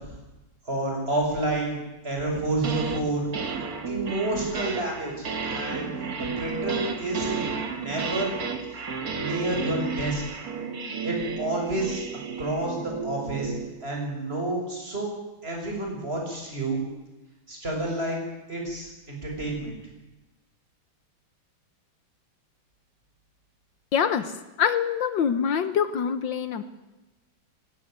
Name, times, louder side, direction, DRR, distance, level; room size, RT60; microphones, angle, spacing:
voice 1, 0.7-3.3 3.9-5.9 6.2-8.4 9.2-10.2 11.0-12.0 12.4-13.5 13.8-15.1 15.4-16.8 17.5-18.2 18.5-19.7, right 2 dB, 30° right, 0 dB, 7.0 m, -29 dB
sound 1, 2.3-3.0 3.3-13.7, right 5 dB, 50° right, 2.1 m, -32 dB
voice 2, 23.9-24.3 24.6-26.6, left 7 dB, 70° left, 12 dB, 1.7 m, -24 dB
19.0 x 18.0 x 9.5 m, 1.0 s
omnidirectional pair, 2.1 m